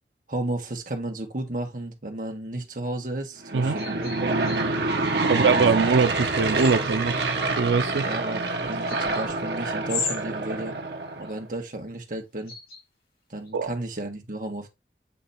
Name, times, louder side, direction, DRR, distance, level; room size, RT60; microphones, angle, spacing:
voice 1, 0.3-4.3 5.1-5.8 8.0-10.8 11.2-12.5 13.3-14.7, right 1 dB, 50° right, 1.6 m, -33 dB
Aircraft / Engine, 3.4-11.4, right 3 dB, 70° right, 1.1 m, -27 dB
sound 1, 3.8-4.7 6.3-7.0 8.9-9.3 9.8-10.2 11.2-11.3 12.4-12.8 13.5-13.6, left 5 dB, 55° left, 2.3 m, -34 dB
voice 2, 5.2-8.0 13.5-13.7, right 5 dB, 90° right, 0.5 m, -23 dB
8.4 x 3.1 x 4.1 m
head